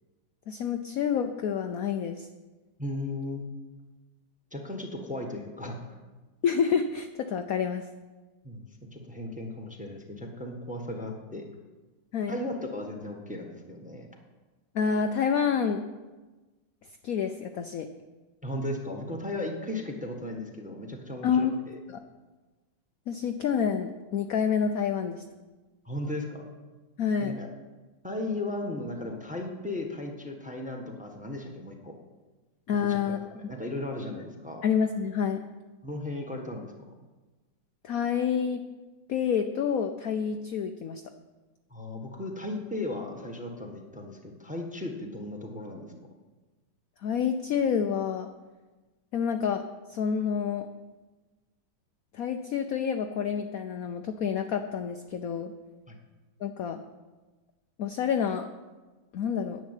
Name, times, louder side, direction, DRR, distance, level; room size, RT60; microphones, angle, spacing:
voice 1, 0.5-2.3 6.4-7.8 12.1-12.4 14.7-15.8 17.0-17.9 21.2-21.6 21.9-22.0 23.1-25.2 27.0-27.4 32.7-33.2 34.6-35.4 37.8-38.6 39.1-41.0 47.0-48.3 49.1-49.6 49.9-50.7 52.1-55.5 56.4-56.8 57.8-58.5 59.1-59.6, left 7 dB, 70° left, 7 dB, 0.8 m, -28 dB
voice 2, 2.8-3.4 4.5-5.9 8.4-11.5 12.3-14.1 18.4-21.8 25.8-26.4 27.2-27.5 28.0-31.9 32.8-34.6 35.8-36.7 41.7-45.9 55.9-56.0, left 1 dB, 5° right, 2 dB, 1.1 m, -36 dB
10.5 x 7.3 x 9.0 m, 1.2 s
omnidirectional pair, 2.2 m